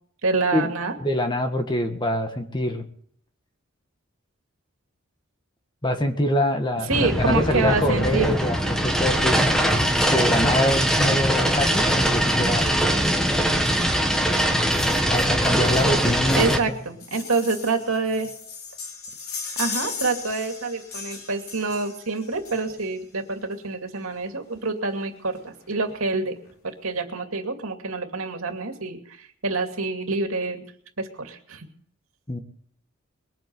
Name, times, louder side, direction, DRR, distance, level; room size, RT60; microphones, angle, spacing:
voice 1, 0.2-0.9 6.9-8.3 16.4-18.3 19.6-26.3 26.6-29.0 29.4-30.6 31.0-31.7, right 3 dB, 80° right, 4 dB, 2.5 m, -27 dB
voice 2, 1.0-2.8 5.8-9.8 10.1-12.7 15.1-16.6 32.3-32.4, left 1 dB, 20° left, 6 dB, 1.5 m, -25 dB
sound 1, 6.9-16.6, equal, 5° left, 1.5 m, -22 dB
sound 2, 14.7-23.0 24.1-24.2 24.5-24.6 24.9-25.0 25.4-26.0 26.5-26.6, left 5 dB, 85° left, 4.2 m, -37 dB
21.5 x 8.8 x 7.7 m, 0.66 s
head